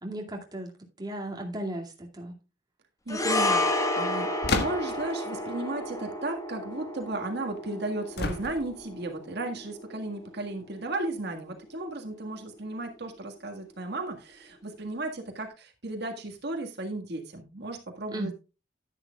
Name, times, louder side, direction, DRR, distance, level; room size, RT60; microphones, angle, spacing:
voice 1, 0.0-2.4 18.1-18.3, right 1 dB, 20° right, 1 dB, 2.3 m, -36 dB
sound 1, 3.1-11.6 11.8-12.0, left 1 dB, 20° left, 1.5 m, -32 dB
voice 2, 3.1-18.3, right 2 dB, 60° right, 3 dB, 1.8 m, -35 dB
sound 2, 4.4-5.1 8.2-8.9, left 3 dB, 60° left, 1.5 m, -30 dB
11.0 x 11.0 x 2.3 m, 0.30 s
head